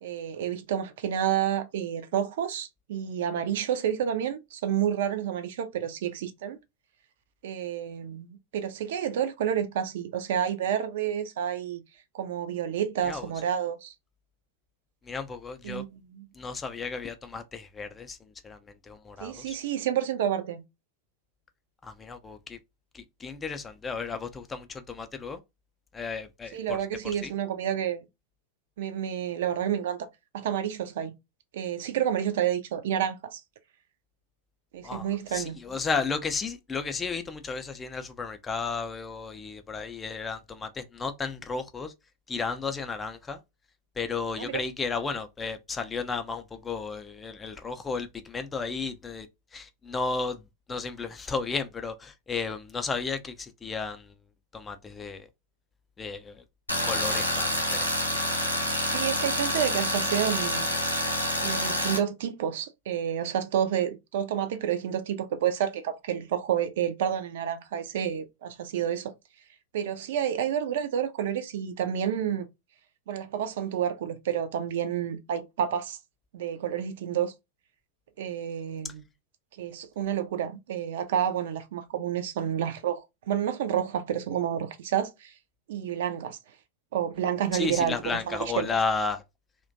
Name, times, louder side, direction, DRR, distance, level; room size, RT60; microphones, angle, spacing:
voice 1, 0.0-6.6 7.4-11.8 12.1-13.9 15.6-16.3 19.2-20.6 26.5-28.0 28.8-30.1 30.3-31.1 31.5-33.4 34.7-35.6 44.4-44.6 58.8-60.7 61.4-69.1 69.7-72.5 73.1-76.0 76.3-77.3 78.2-79.0 79.6-85.3 85.7-86.4 86.9-88.7, right 9 dB, 55° right, 0.4 m, -29 dB
voice 2, 15.1-15.8 16.4-18.2 18.4-18.6 18.8-19.6 21.8-22.6 22.9-25.4 25.9-26.8 27.2-27.3 34.8-41.9 42.3-43.4 44.0-49.3 49.5-50.4 50.7-54.1 54.5-55.3 56.0-56.4 56.8-57.9 87.5-89.2, left 4 dB, 15° left, 0.3 m, -33 dB
Tools, 56.7-62.0, left 1 dB, 90° left, 0.5 m, -27 dB
2.4 x 2.1 x 2.5 m
figure-of-eight pair, 90°, 0 cm